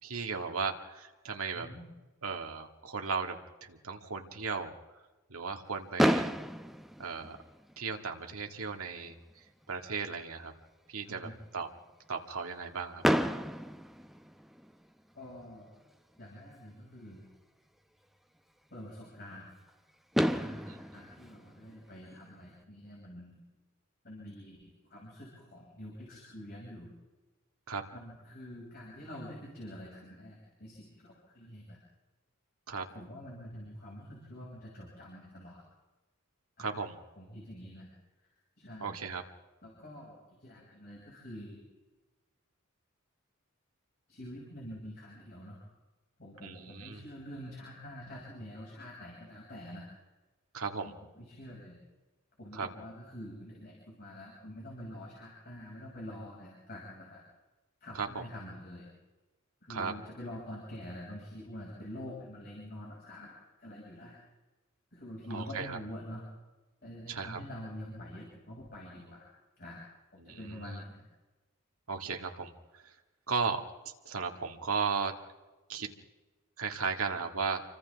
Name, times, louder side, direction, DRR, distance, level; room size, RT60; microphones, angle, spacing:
voice 1, 0.0-1.7 2.2-4.8 5.3-6.3 7.0-7.4 7.8-9.2 9.7-10.5 10.9-11.7 12.1-13.0 20.7-20.8 27.7-27.8 32.7-32.9 36.6-37.0 38.8-39.2 46.4-47.0 50.5-50.9 52.5-52.7 57.9-58.2 59.7-59.9 65.3-65.8 67.1-67.4 70.2-70.8 71.9-72.5 73.3-73.6 74.1-75.1 75.7-75.9 76.6-77.6, right 5 dB, 80° right, 3 dB, 2.1 m, -35 dB
voice 2, 1.5-1.9 11.1-11.4 15.1-15.7 16.2-17.3 18.7-19.6 20.3-23.4 24.0-26.9 27.9-31.8 32.9-35.6 36.6-36.7 37.2-37.9 38.6-39.0 39.6-41.6 44.1-45.6 46.2-49.9 50.8-51.8 52.4-57.2 57.8-58.9 59.6-64.2 64.9-66.2 66.8-69.3 69.6-69.9 70.1-71.0, equal, 45° left, -4 dB, 6.4 m, -46 dB
Fireworks, 6.0-8.0 8.8-8.9 9.1-9.3 9.6-9.7 13.0-14.9 16.6-16.7 19.7-19.8 20.1-22.4, equal, ahead, 0.7 m, -31 dB
28.5 x 25.0 x 3.6 m, 1.2 s
head